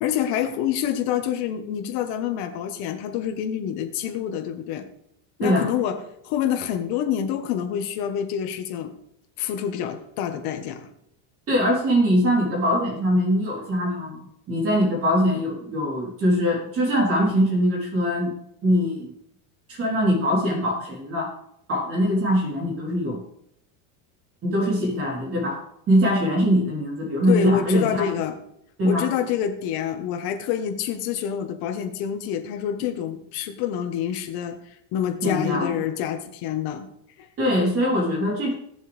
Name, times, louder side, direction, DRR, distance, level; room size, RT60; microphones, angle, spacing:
voice 1, 0.0-4.8 5.4-6.0 6.2-8.9 9.4-10.9 27.3-28.3 28.8-34.6 34.9-36.9, left 9 dB, 60° left, 6 dB, 1.6 m, -27 dB
voice 2, 11.5-14.2 14.5-18.3 18.6-19.1 19.7-21.3 21.7-23.2 24.4-25.6 25.9-28.1 28.8-29.1 35.2-35.7 37.4-38.5, equal, 30° right, -2 dB, 3.8 m, -22 dB
17.0 x 7.2 x 3.5 m, 0.73 s
cardioid pair, 140°, 42 cm